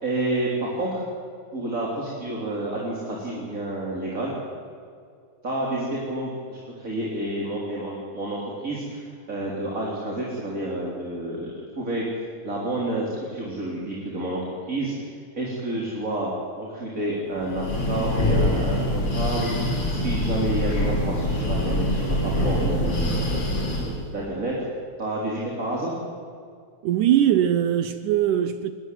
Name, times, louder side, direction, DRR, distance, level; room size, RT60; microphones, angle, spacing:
voice 1, 0.0-1.0 1.5-4.4 5.4-11.5 11.8-12.0 12.4-15.1 15.4-16.3 16.6-19.6 19.9-24.5 25.0-26.0, right 1 dB, 20° right, 3.6 m, -29 dB
Breathing, 17.4-24.1, left 1 dB, 30° left, 4.0 m, -24 dB
voice 2, 26.8-28.7, right 10 dB, 75° right, 2.1 m, -21 dB
22.5 x 19.0 x 9.3 m
omnidirectional pair, 4.3 m